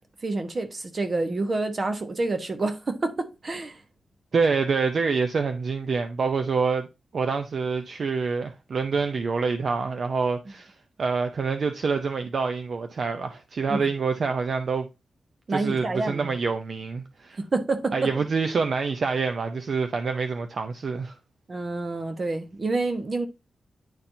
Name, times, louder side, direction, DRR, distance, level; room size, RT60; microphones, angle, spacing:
voice 1, 0.2-3.8 13.7-13.9 15.5-16.3 17.4-18.1 21.5-23.3, right 3 dB, 40° right, 1.1 m, -28 dB
voice 2, 4.3-6.9 7.1-10.7 11.0-14.9 15.5-17.4 17.9-21.2, right 4 dB, 55° right, 0.5 m, -26 dB
10.5 x 4.3 x 2.7 m
wide cardioid pair, 120°, 0 cm